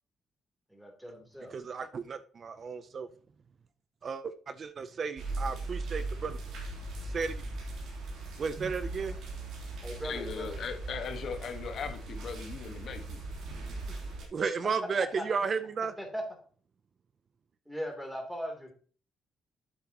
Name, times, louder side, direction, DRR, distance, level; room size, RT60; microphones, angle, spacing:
voice 1, 0.7-1.5 9.8-10.7 13.9-14.0 15.2-15.3 16.0-16.2 17.6-18.7, equal, 5° right, 3.3 m, -39 dB
voice 2, 1.5-3.1 4.0-6.4 7.0-7.4 8.4-9.1 14.3-15.9, right 5 dB, 45° right, 0.6 m, -33 dB
sound 1, 5.2-14.3, right 2 dB, 80° right, 3.4 m, -39 dB
voice 3, 10.0-13.2, left 6 dB, 65° left, 1.6 m, -38 dB
8.6 x 8.4 x 3.0 m
cardioid pair, 90°, 0 cm